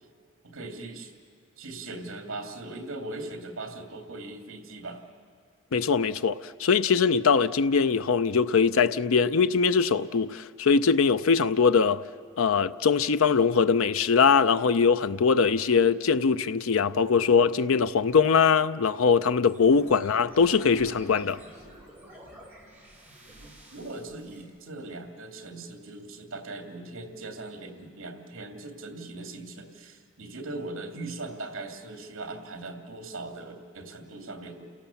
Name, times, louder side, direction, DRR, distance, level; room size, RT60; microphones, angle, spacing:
voice 1, 0.4-1.1 1.6-5.0 23.3-34.7, right 2 dB, 75° right, 2.5 m, -40 dB
voice 2, 5.7-12.0 12.4-21.4, left 5 dB, 80° left, 0.5 m, -22 dB
sound 1, 19.4-24.4, right 1 dB, 10° right, 3.9 m, -49 dB
29.5 x 17.5 x 7.1 m
head